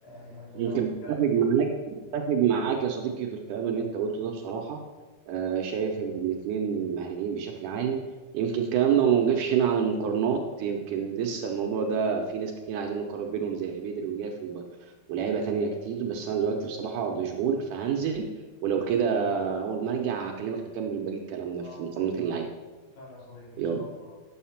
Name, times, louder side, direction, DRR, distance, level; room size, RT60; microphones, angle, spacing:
voice 1, 0.0-1.5 21.6-21.8 22.2-22.3 22.9-24.1, left 2 dB, 85° left, -6 dB, 5.2 m, -47 dB
voice 2, 0.6-4.8 5.3-8.0 8.3-18.2 18.6-22.4 23.6-23.8, right 7 dB, 75° right, 2 dB, 1.9 m, -28 dB
10.5 x 6.4 x 5.7 m, 1.3 s
omnidirectional pair, 4.5 m